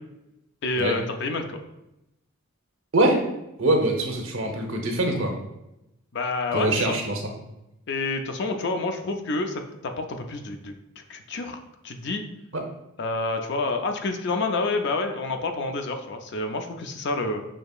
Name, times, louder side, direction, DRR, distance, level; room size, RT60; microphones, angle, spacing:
voice 1, 0.6-1.6 6.1-7.0 7.9-10.7 11.1-11.6 11.8-12.2 13.0-17.5, left 3 dB, 55° left, 5 dB, 0.5 m, -28 dB
voice 2, 3.6-5.3 6.5-7.3 12.5-12.6, right 1 dB, 75° right, 2 dB, 0.9 m, -23 dB
6.4 x 2.8 x 2.4 m, 0.90 s
head